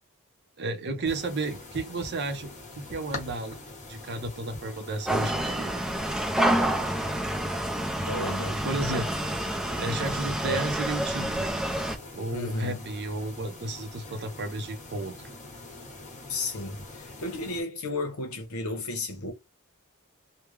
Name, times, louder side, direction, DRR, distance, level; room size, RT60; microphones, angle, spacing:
voice 1, 0.6-2.5 2.8-3.6 3.9-5.7 8.1-8.3 8.6-9.1 9.8-11.5 12.1-15.1, right 2 dB, 50° right, 0.6 m, -32 dB
sound 1, 1.0-17.6, left 2 dB, 35° left, 1.3 m, -44 dB
sound 2, 5.1-12.0, right 1 dB, 5° right, 0.5 m, -28 dB
voice 2, 8.1-8.6 12.3-12.8 16.3-19.3, left 2 dB, 70° left, 1.0 m, -33 dB
3.4 x 2.2 x 3.2 m
head